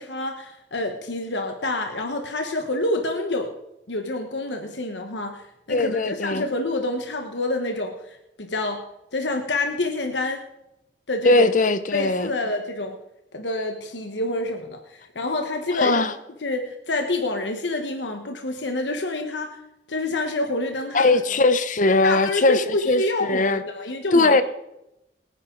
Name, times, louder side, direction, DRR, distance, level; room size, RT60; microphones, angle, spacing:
voice 1, 0.0-3.5 3.9-8.8 9.1-10.4 11.1-11.5 11.9-13.0 13.3-16.1 16.4-19.6 19.9-21.1 22.0-24.4, left 2 dB, 85° left, 1.3 m, -27 dB
voice 2, 5.7-6.4 11.2-12.3 15.7-16.1 20.9-23.6 24.1-24.4, left 2 dB, 45° left, 0.8 m, -20 dB
23.5 x 10.0 x 3.9 m
head